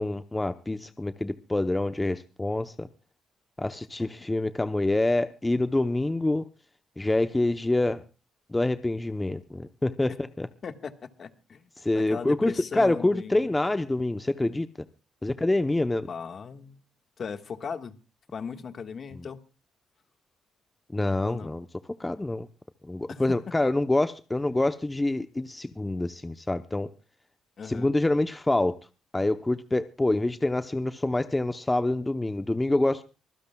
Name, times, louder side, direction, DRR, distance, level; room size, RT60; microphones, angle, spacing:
voice 1, 0.0-2.9 3.6-6.5 7.0-8.0 8.5-10.5 11.8-14.7 15.2-16.1 19.1-19.3 20.9-21.7 22.0-22.5 22.9-26.9 27.6-28.8 29.1-33.0, left 2 dB, 15° left, 10 dB, 0.8 m, -26 dB
voice 2, 10.6-11.7 11.9-13.5 16.1-16.8 17.2-17.9 18.3-19.4 21.2-21.5 23.1-23.2 27.6-27.9, left 6 dB, 50° left, 8 dB, 1.5 m, -38 dB
25.0 x 15.5 x 2.3 m, 0.33 s
cardioid pair, 90°, 0 cm